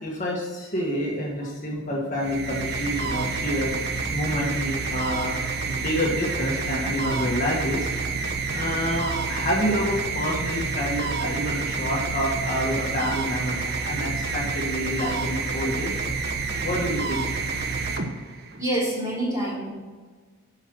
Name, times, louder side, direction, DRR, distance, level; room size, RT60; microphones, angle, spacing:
voice 1, 0.0-5.4 5.7-7.9 8.5-16.1 16.5-17.2 17.9-18.1, equal, 35° left, -3 dB, 1.6 m, -28 dB
sound 1, 2.1-18.7, right 4 dB, 45° right, 1.1 m, -28 dB
voice 2, 18.6-19.7, right 1 dB, 15° right, -6 dB, 3.6 m, -26 dB
11.0 x 5.7 x 6.2 m, 1.4 s
head